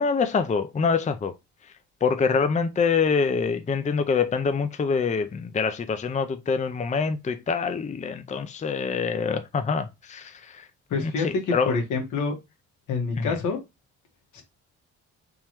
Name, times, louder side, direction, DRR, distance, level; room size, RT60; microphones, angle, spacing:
voice 1, 0.0-1.3 2.0-10.7 10.9-11.7 13.2-13.3, left 5 dB, 25° left, 0.5 m, -25 dB
voice 2, 10.9-12.3 12.9-13.6 14.3-14.4, left 4 dB, 85° left, 1.6 m, -27 dB
3.7 x 3.0 x 4.5 m
cardioid pair, 90°, 30 cm